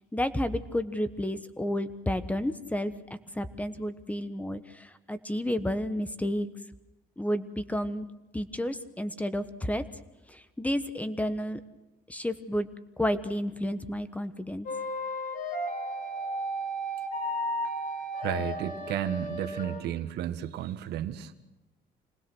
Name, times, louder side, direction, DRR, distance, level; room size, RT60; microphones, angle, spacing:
voice 1, 0.1-2.9 3.3-6.5 7.2-8.1 8.3-9.8 10.3-11.6 12.1-12.7 13.0-14.7, left 1 dB, 10° left, 12 dB, 1.1 m, -31 dB
sound 1, 14.7-19.8, equal, 55° left, 4.6 m, -33 dB
voice 2, 18.2-21.3, right 11 dB, 75° right, 9 dB, 1.4 m, -33 dB
26.5 x 19.5 x 6.3 m, 1.0 s
cardioid pair, 110°, 17 cm